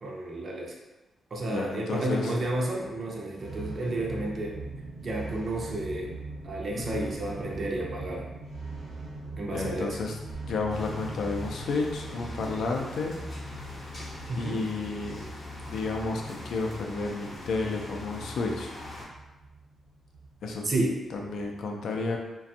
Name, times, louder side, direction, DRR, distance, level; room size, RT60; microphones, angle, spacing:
voice 1, 0.0-0.7 1.3-4.6 5.0-6.1 6.4-8.3 9.4-10.0 14.3-14.6 20.6-20.9, right 1 dB, 45° right, -1 dB, 0.5 m, -31 dB
voice 2, 1.5-2.3 6.8-7.0 9.5-10.2 10.5-13.1 14.4-15.2 15.7-18.7 20.4-20.6 21.1-22.2, left 3 dB, 75° left, 1 dB, 0.4 m, -31 dB
sound 1, 2.3-21.6, right 3 dB, 85° right, 0.8 m, -42 dB
sound 2, 10.7-19.1, left 2 dB, 40° left, 0.7 m, -42 dB
2.5 x 2.2 x 2.6 m, 1.1 s
cardioid pair, 110°, 0 cm